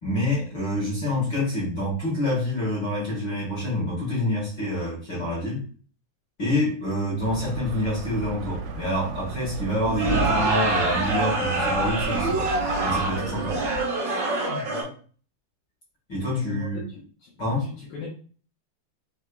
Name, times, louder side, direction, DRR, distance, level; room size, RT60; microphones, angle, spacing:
voice 1, 0.0-5.6 6.4-12.5 12.8-13.6 16.1-16.9 17.4-17.7, left 1 dB, 50° left, -6 dB, 1.3 m, -27 dB
sound 1, 7.2-13.8, right 5 dB, 90° right, 2.7 m, -33 dB
sound 2, 9.8-14.8, right 2 dB, 55° right, 1.3 m, -25 dB
voice 2, 14.4-15.0 16.3-17.3 17.6-18.1, left 5 dB, 85° left, -5 dB, 1.7 m, -38 dB
6.3 x 2.9 x 2.3 m, 0.42 s
omnidirectional pair, 4.7 m